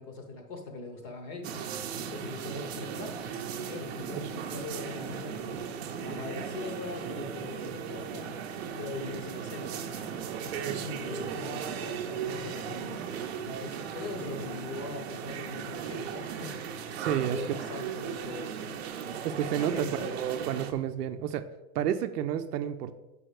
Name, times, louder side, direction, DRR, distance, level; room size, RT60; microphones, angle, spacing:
voice 1, 0.0-5.6 6.0-8.3 8.7-10.1 10.4-18.7 19.6-20.3, left 3 dB, 25° left, 4 dB, 0.7 m, -41 dB
sound 1, 1.4-20.7, right 7 dB, 45° right, 0.7 m, -37 dB
voice 2, 17.0-17.4 19.2-19.9 20.1-21.5 21.7-22.9, right 10 dB, 90° right, 10 dB, 0.7 m, -30 dB
7.7 x 5.5 x 4.8 m, 1.0 s
supercardioid pair, 175°, 46 cm